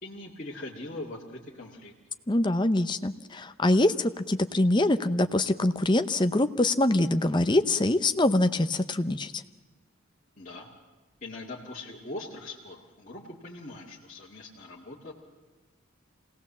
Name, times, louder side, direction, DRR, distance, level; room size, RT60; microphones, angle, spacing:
voice 1, 0.0-1.9 10.4-10.7 11.2-15.1, left 2 dB, 35° left, -5 dB, 2.1 m, -41 dB
voice 2, 2.3-9.4, left 1 dB, 20° left, 10 dB, 0.7 m, -24 dB
26.0 x 18.0 x 7.3 m, 1.3 s
head